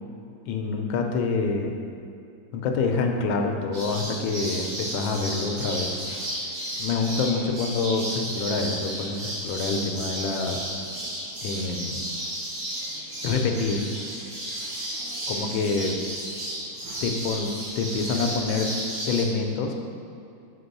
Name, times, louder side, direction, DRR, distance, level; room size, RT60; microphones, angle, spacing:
voice 1, 0.5-1.8 2.5-6.0 6.8-10.6 11.4-12.0 13.2-13.9 15.3-16.0 17.0-17.5 17.8-18.7 19.1-19.7, left 4 dB, 90° left, 3 dB, 1.4 m, -26 dB
sound 1, 3.7-19.2, right 1 dB, 60° right, 2.2 m, -33 dB
4.7 x 4.3 x 5.3 m, 2.6 s
omnidirectional pair, 2.1 m